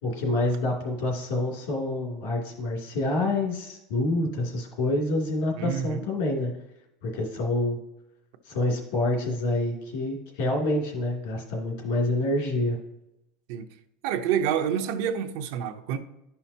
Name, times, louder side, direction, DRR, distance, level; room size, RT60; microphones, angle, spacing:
voice 1, 0.0-6.5 7.0-7.8 8.4-12.8, left 2 dB, 80° left, 2.6 m, -27 dB
voice 2, 5.6-6.1 13.5-13.7 14.0-16.0, right 8 dB, 65° right, 0.7 m, -28 dB
11.0 x 5.7 x 2.8 m
cardioid pair, 170°, 0 cm